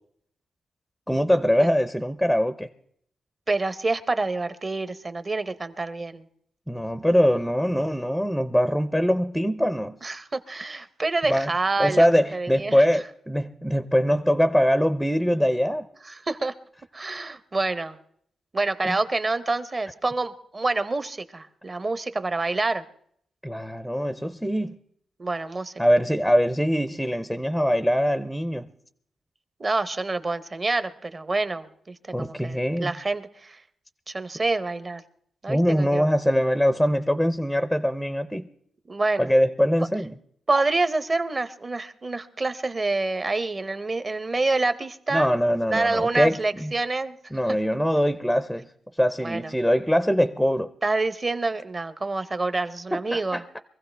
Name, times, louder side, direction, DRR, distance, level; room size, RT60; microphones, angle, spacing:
voice 1, 1.1-2.7 6.7-10.0 11.3-11.5 11.8-15.9 18.8-19.0 23.4-24.8 25.8-28.7 32.1-33.0 35.5-38.5 39.2-40.1 45.1-46.7 47.3-48.7 49.0-50.7 52.9-53.6, equal, ahead, 11 dB, 0.5 m, -23 dB
voice 2, 3.5-6.2 10.0-12.8 16.1-16.5 16.9-18.0 18.5-22.8 25.2-25.7 29.6-33.6 34.1-35.0 35.4-36.1 38.9-39.3 40.5-45.3 45.7-47.2 47.5-47.6 49.2-49.5 50.8-53.4, right 3 dB, 30° right, 12 dB, 0.8 m, -27 dB
23.5 x 15.5 x 3.3 m, 0.67 s
wide cardioid pair, 120°, 0 cm